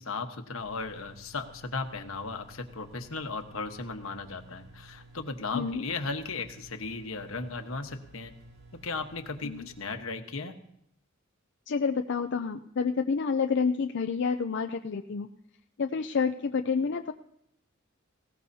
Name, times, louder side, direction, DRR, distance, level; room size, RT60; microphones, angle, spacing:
voice 1, 0.0-8.3 8.8-10.5, left 3 dB, 75° left, 6 dB, 1.2 m, -36 dB
sound 1, 0.6-9.9, right 2 dB, 85° right, 3.7 m, -53 dB
voice 2, 11.7-15.3 15.8-17.1, left 5 dB, 60° left, 6 dB, 0.5 m, -29 dB
19.5 x 17.0 x 2.8 m, 0.76 s
head